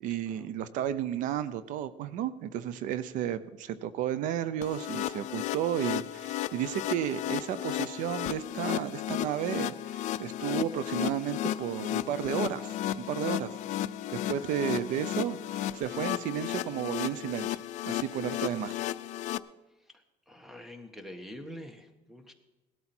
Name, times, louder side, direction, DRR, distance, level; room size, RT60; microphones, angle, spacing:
voice 1, 0.0-13.5 14.3-17.6 17.8-18.8, right 10 dB, 75° right, 15 dB, 0.7 m, -33 dB
sound 1, 4.6-19.4, left 13 dB, 65° left, 0.5 m, -34 dB
voice 2, 20.3-22.3, equal, 5° right, 7 dB, 1.5 m, -45 dB
18.5 x 12.5 x 4.4 m, 1.1 s
cardioid pair, 140°, 13 cm